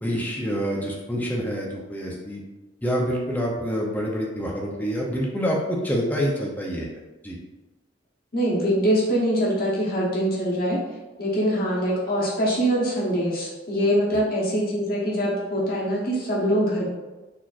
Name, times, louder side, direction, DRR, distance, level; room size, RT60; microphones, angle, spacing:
voice 1, 0.0-2.4 2.8-6.9 7.2-7.4, equal, 10° left, -2 dB, 0.6 m, -27 dB
voice 2, 8.3-10.8 11.2-16.9, equal, 55° left, -6 dB, 1.0 m, -23 dB
4.1 x 2.9 x 2.5 m, 1.1 s
head